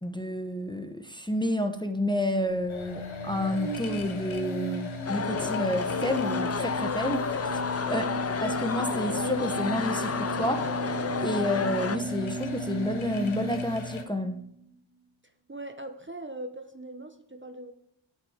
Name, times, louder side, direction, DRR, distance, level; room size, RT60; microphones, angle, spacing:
voice 1, 0.0-7.4 7.9-8.0 8.4-10.7 11.2-14.4, left 1 dB, 10° left, 7 dB, 0.9 m, -30 dB
sound 1, 2.5-14.6, right 2 dB, 85° right, 3.1 m, -36 dB
sound 2, 2.7-14.0, left 5 dB, 85° left, 1.1 m, -39 dB
sound 3, 5.1-12.0, left 5 dB, 35° left, 0.5 m, -31 dB
voice 2, 15.5-17.7, right 1 dB, 25° right, 7 dB, 0.9 m, -40 dB
9.0 x 8.6 x 5.0 m, 0.74 s
wide cardioid pair, 45°, 46 cm